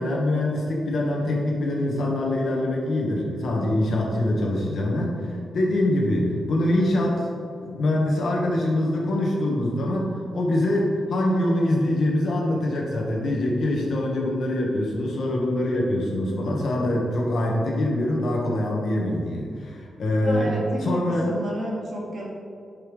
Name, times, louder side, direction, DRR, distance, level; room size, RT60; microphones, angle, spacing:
voice 1, 0.0-7.3 7.6-21.3, left 1 dB, 55° left, -2 dB, 1.6 m, -24 dB
voice 2, 20.2-21.0 21.3-22.2, right 1 dB, 55° right, -4 dB, 2.1 m, -31 dB
11.0 x 5.5 x 3.3 m, 2.4 s
wide cardioid pair, 155°, 0 cm